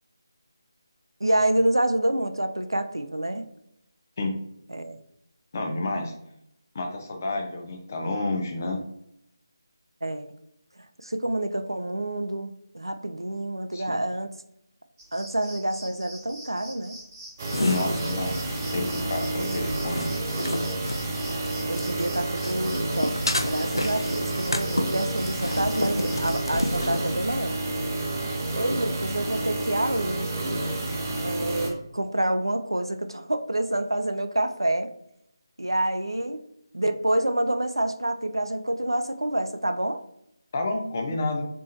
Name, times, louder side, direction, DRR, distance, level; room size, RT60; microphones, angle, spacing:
voice 1, 1.2-3.5 4.7-5.0 10.0-10.3 11.0-14.3 15.1-17.0 19.4-19.5 21.7-27.6 28.5-30.3 31.2-34.9 35.6-36.4 36.7-40.0, right 1 dB, 80° right, 9 dB, 0.4 m, -27 dB
voice 2, 5.5-6.1 6.7-8.8 13.7-14.0 17.6-18.3 18.7-20.3 40.5-41.4, left 2 dB, 35° left, 3 dB, 0.7 m, -29 dB
sound 1, 15.0-27.1, right 1 dB, 10° right, 1.2 m, -45 dB
sound 2, 17.4-31.7, right 2 dB, 30° right, 0.7 m, -29 dB
sound 3, 17.5-22.0 22.4-27.0, left 1 dB, 80° left, 0.4 m, -31 dB
4.2 x 3.5 x 2.7 m, 0.78 s
figure-of-eight pair, 155°, 2 cm